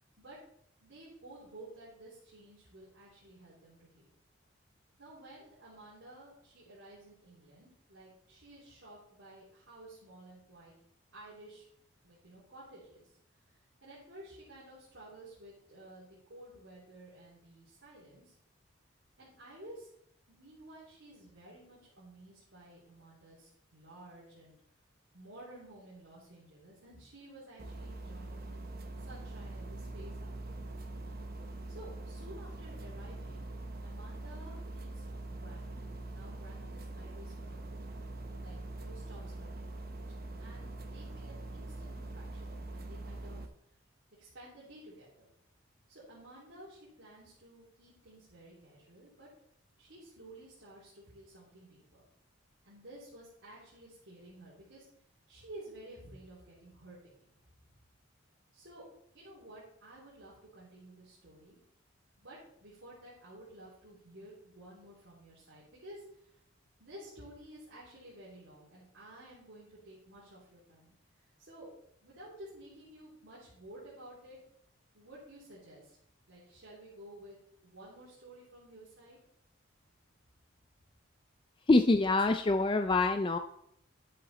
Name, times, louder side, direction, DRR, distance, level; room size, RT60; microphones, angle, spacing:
voice 1, 0.8-4.1 5.0-10.7 11.1-11.7 12.0-13.2 13.5-18.3 19.2-19.9 20.3-24.6 25.1-30.7 31.7-33.5 33.8-35.0 35.3-35.8 36.1-37.8 38.4-43.5 44.2-45.3 45.9-49.3 49.8-52.0 52.6-54.9 55.3-57.3 58.5-58.9 59.1-61.6 62.2-66.4 66.8-71.7 72.0-74.4 74.9-76.0 76.3-77.4 77.6-79.2, right 1 dB, 70° right, -8 dB, 3.3 m, -53 dB
sound 1, 27.6-43.5, right 2 dB, 45° right, 0.8 m, -43 dB
voice 2, 81.7-83.4, left 2 dB, 25° left, 8 dB, 0.3 m, -25 dB
11.0 x 7.6 x 4.2 m, 0.72 s
head